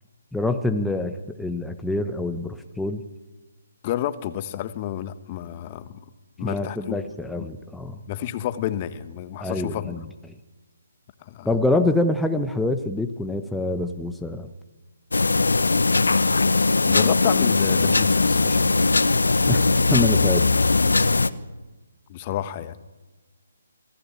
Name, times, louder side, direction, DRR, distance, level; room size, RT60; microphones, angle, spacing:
voice 1, 0.3-3.0 6.4-8.0 9.4-10.0 11.4-14.5 19.5-20.5, left 2 dB, 5° left, 6 dB, 1.0 m, -25 dB
voice 2, 3.8-6.0 6.4-7.0 8.1-10.0 11.2-11.5 16.8-18.9 22.1-22.8, left 12 dB, 30° left, 13 dB, 1.1 m, -30 dB
sound 1, 15.1-21.3, left 3 dB, 75° left, 1.0 m, -20 dB
26.0 x 15.0 x 8.9 m, 1.2 s
figure-of-eight pair, 145°, 0 cm